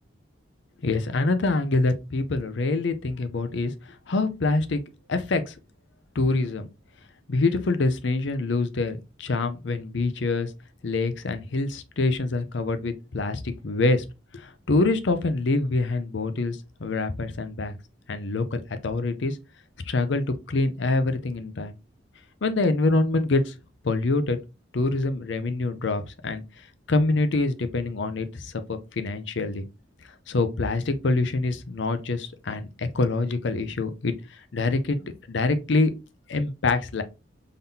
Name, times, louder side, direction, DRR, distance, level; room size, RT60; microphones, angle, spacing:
voice 1, 0.8-3.7 4.1-4.8 5.1-5.5 6.2-6.7 7.3-10.5 10.8-14.0 14.3-17.7 18.1-19.4 19.9-21.7 22.4-23.5 23.8-24.4 24.7-26.4 26.9-29.6 30.3-34.2 34.5-35.9 36.3-37.0, left 3 dB, 65° left, 0.6 m, -25 dB
3.8 x 3.7 x 2.7 m
head